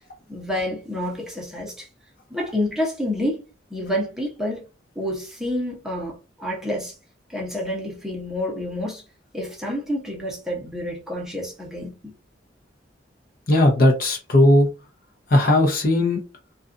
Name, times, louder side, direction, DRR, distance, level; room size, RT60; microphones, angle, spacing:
voice 1, 0.3-1.9 2.3-3.4 3.7-4.6 5.0-6.9 7.3-9.0 9.3-11.9, left 1 dB, 5° right, 0.8 m, -28 dB
voice 2, 13.5-14.7 15.3-16.2, left 1 dB, 55° left, 0.7 m, -17 dB
2.5 x 2.3 x 2.5 m
head